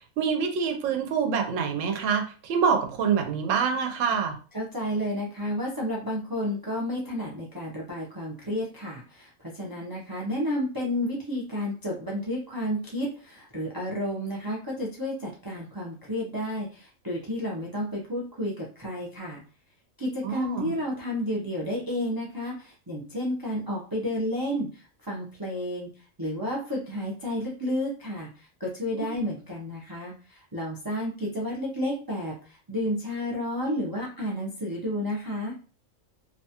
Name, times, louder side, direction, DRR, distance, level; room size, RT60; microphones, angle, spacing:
voice 1, 0.2-4.3 20.2-20.8 28.9-29.0, right 6 dB, 70° right, 5 dB, 0.9 m, -26 dB
voice 2, 4.5-19.4 20.0-25.9 26.2-35.5, left 1 dB, 30° right, -4 dB, 0.4 m, -31 dB
2.8 x 2.3 x 2.8 m, 0.38 s
omnidirectional pair, 1.5 m